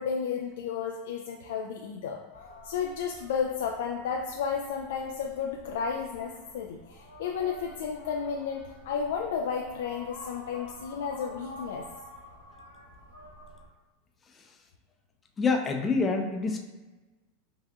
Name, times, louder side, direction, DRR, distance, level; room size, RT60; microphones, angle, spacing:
voice 1, 0.0-2.2 2.6-11.8, left 6 dB, 70° left, 1 dB, 0.3 m, -32 dB
sound 1, 2.3-13.7, left 1 dB, 90° left, 0.7 m, -49 dB
voice 2, 15.4-16.6, left 4 dB, 25° left, 3 dB, 0.6 m, -26 dB
5.5 x 2.6 x 2.3 m, 1.2 s
hypercardioid pair, 90°, 0 cm